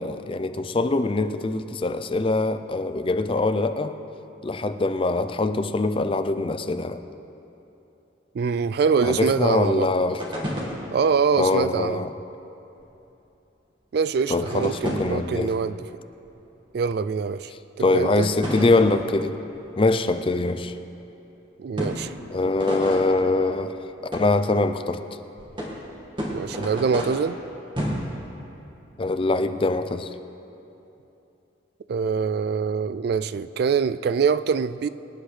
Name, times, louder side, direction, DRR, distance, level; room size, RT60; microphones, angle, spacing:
voice 1, 0.0-3.9 4.4-7.0 9.0-10.2 11.4-12.1 14.3-15.5 17.8-19.4 19.8-20.7 22.3-23.7 24.1-25.0 29.0-30.1, left 2 dB, 25° left, 9 dB, 0.4 m, -23 dB
voice 2, 8.3-9.9 10.9-12.0 13.9-15.8 16.7-17.5 17.8-18.3 21.6-22.1 26.3-27.4 31.9-34.9, right 5 dB, 55° right, 14 dB, 0.3 m, -24 dB
sound 1, 10.2-11.3 12.8-12.9 14.3-15.5 16.3-16.4 18.4-19.7 20.2-20.3 21.8-23.7 24.1-24.5 25.4-28.2, equal, 25° right, 1.7 m, -32 dB
25.0 x 9.9 x 3.3 m, 3.0 s
head